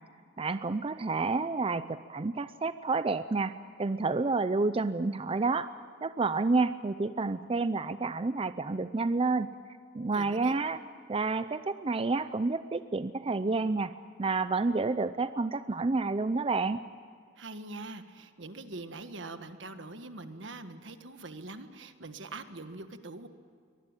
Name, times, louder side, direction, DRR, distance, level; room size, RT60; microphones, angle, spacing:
voice 1, 0.4-3.5 3.8-5.7 6.0-9.5 9.9-10.8 11.1-13.9 14.2-16.8, right 3 dB, 30° right, 12 dB, 0.5 m, -29 dB
voice 2, 10.1-10.6 17.3-23.3, right 2 dB, 75° right, 9 dB, 1.5 m, -43 dB
23.5 x 19.5 x 9.0 m, 2.2 s
head